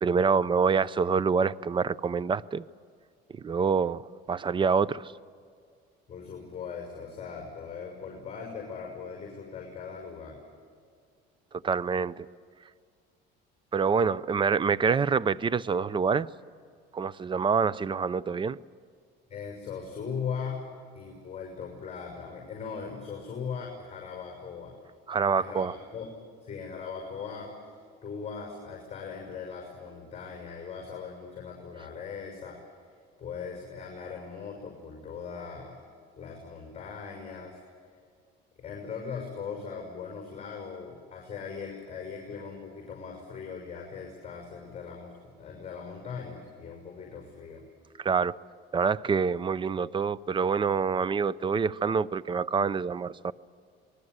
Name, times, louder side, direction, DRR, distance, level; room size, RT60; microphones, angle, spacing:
voice 1, 0.0-2.6 3.4-5.1 11.6-12.3 13.7-16.3 16.9-18.6 25.1-25.7 48.0-48.3 48.7-53.3, right 5 dB, 25° right, 0.6 m, -26 dB
voice 2, 6.1-10.4 19.3-20.7 20.9-24.7 25.3-26.1 26.4-27.7 28.0-32.6 33.2-35.8 36.2-37.6 38.6-47.6, left 6 dB, 30° left, 6.0 m, -39 dB
27.0 x 20.5 x 8.2 m
cardioid pair, 120°, 21 cm